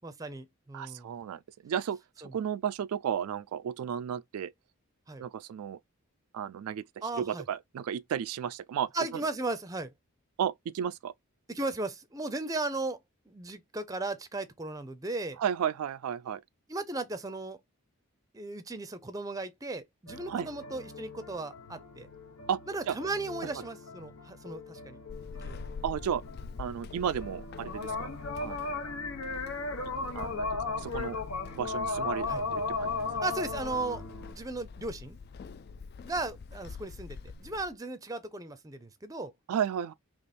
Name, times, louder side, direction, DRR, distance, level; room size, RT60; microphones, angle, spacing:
voice 1, 0.0-1.1 2.2-2.3 5.1-5.2 7.0-7.4 8.9-9.9 11.5-13.0 13.3-15.4 16.7-17.6 18.3-22.1 22.7-25.0 25.4-25.6 32.3-32.4 33.2-34.0 34.3-35.2 36.0-39.3, right 2 dB, 15° right, 0.5 m, -36 dB
voice 2, 0.7-2.0 2.3-4.5 5.2-5.8 6.3-9.2 10.4-11.1 15.4-16.4 20.3-20.5 22.5-22.6 22.9-23.0 25.8-26.2 26.6-28.1 28.4-28.8 30.2-30.5 30.8-31.2 31.5-32.9 39.5-39.9, right 8 dB, 80° right, 0.3 m, -33 dB
sound 1, 20.1-34.3, left 3 dB, 80° left, 1.0 m, -37 dB
Walk footsteps / Squeak, 25.1-37.8, left 5 dB, 45° left, 0.3 m, -45 dB
3.5 x 2.9 x 4.1 m
head